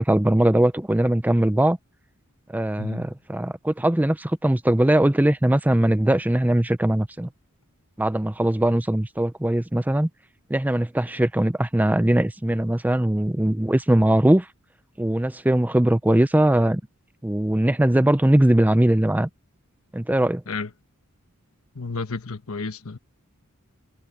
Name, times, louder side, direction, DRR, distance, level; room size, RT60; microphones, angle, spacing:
voice 1, 0.0-1.8 2.5-7.3 8.0-10.1 10.5-14.5 15.0-16.8 17.2-19.3 19.9-20.4, right 1 dB, 10° right, 0.5 m, -20 dB
voice 2, 2.8-3.1 20.5-20.7 21.7-23.0, left 4 dB, 75° left, 1.1 m, -32 dB
head